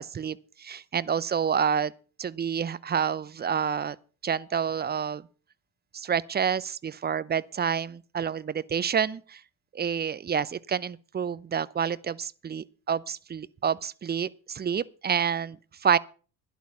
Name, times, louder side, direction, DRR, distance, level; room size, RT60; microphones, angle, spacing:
voice 1, 0.0-1.9 2.2-4.0 4.2-5.2 5.9-9.4 9.7-16.0, right 7 dB, 25° right, 0.7 m, -28 dB
11.5 x 11.5 x 5.7 m
hypercardioid pair, 65°, 43 cm